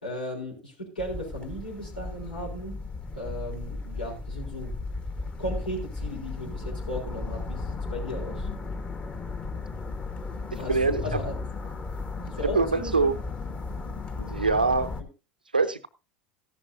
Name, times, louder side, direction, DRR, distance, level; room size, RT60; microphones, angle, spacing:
voice 1, 0.0-2.8 3.1-4.7 5.4-8.5 10.6-11.3 12.2-13.2 15.0-15.1, equal, 80° left, -4 dB, 4.5 m, -36 dB
sound 1, 1.0-15.0, left 3 dB, 25° left, 1.5 m, -35 dB
voice 2, 10.7-11.2 12.4-13.2 14.2-14.9 15.5-15.9, right 3 dB, 85° right, 13 dB, 0.6 m, -24 dB
14.5 x 11.0 x 2.8 m, 0.29 s
figure-of-eight pair, 75°, 5 cm